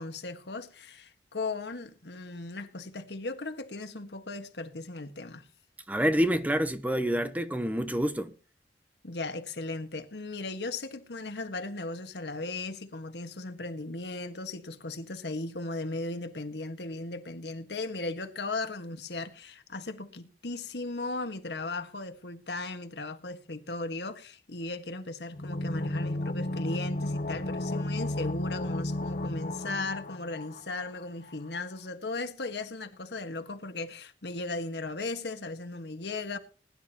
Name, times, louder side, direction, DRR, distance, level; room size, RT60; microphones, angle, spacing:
voice 1, 0.0-5.5 9.0-36.4, left 3 dB, 75° left, 1.6 m, -37 dB
voice 2, 5.9-8.3, equal, 10° right, 0.8 m, -27 dB
sound 1, 25.3-31.0 31.3-31.4, left 1 dB, 50° left, 0.9 m, -33 dB
20.5 x 11.0 x 2.9 m
head